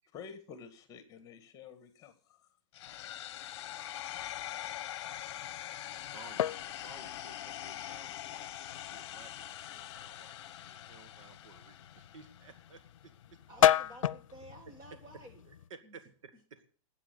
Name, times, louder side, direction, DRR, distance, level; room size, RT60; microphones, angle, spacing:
voice 1, 0.1-2.5, left 6 dB, 20° left, 10 dB, 1.8 m, -50 dB
sound 1, 2.7-12.7, left 12 dB, 50° left, 1.0 m, -43 dB
sound 2, 5.0-15.7, left 11 dB, 75° left, 0.7 m, -35 dB
voice 2, 5.9-13.4 14.7-16.7, right 5 dB, 70° right, 12 dB, 1.9 m, -56 dB
voice 3, 13.5-15.4 15.8-16.0, right 1 dB, 20° right, 6 dB, 1.6 m, -52 dB
13.0 x 8.5 x 8.0 m, 0.43 s
hypercardioid pair, 155°, 17 cm